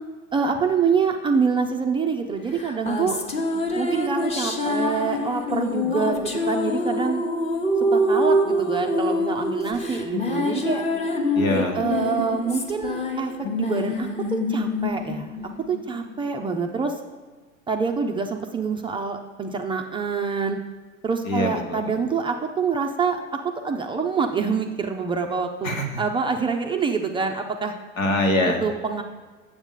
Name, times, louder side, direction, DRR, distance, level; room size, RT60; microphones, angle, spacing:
voice 1, 0.3-3.2 3.8-7.2 7.9-10.8 11.8-14.1 14.5-15.3 15.7-16.9 17.7-20.6 21.0-23.2 23.4-27.7 28.6-29.0, right 5 dB, 15° right, 4 dB, 0.4 m, -26 dB
sound 1, 2.6-16.2, left 1 dB, 15° left, 0.8 m, -25 dB
voice 2, 11.3-11.8 21.2-22.0 25.6-26.0 28.0-28.6, left 1 dB, 80° left, 3 dB, 1.3 m, -24 dB
8.1 x 7.3 x 3.7 m, 1.4 s
figure-of-eight pair, 85°, 40 cm